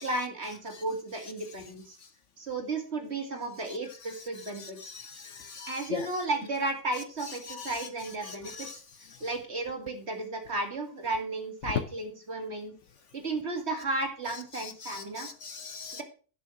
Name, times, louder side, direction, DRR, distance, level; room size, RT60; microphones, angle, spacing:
voice 1, 0.0-2.0 2.4-4.9 5.7-8.5 9.2-12.7 13.1-15.3 15.9-16.0, right 2 dB, 45° right, 4 dB, 2.5 m, -34 dB
voice 2, 4.6-6.1 7.4-7.9 8.2-8.8 9.1-9.2 14.5-16.0, left 5 dB, 60° left, 11 dB, 1.0 m, -41 dB
11.0 x 6.5 x 5.8 m, 0.37 s
omnidirectional pair, 1.5 m